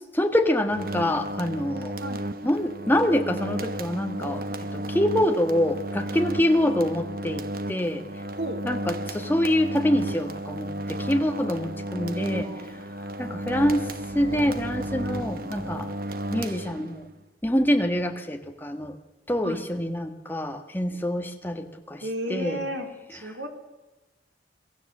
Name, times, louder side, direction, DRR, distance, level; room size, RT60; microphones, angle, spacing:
voice 1, 0.0-2.0 2.4-8.0 8.6-12.8 13.2-13.9 14.1-15.9 16.3-17.0 17.4-19.0 19.3-22.0 22.3-22.6, left 1 dB, 10° left, 5 dB, 1.5 m, -25 dB
sound 1, 0.7-17.1, right 1 dB, 50° right, 1.0 m, -33 dB
voice 2, 12.0-12.7 19.4-19.6 22.0-23.5, right 1 dB, 75° right, 4 dB, 3.3 m, -34 dB
23.0 x 16.0 x 7.5 m, 1.1 s
head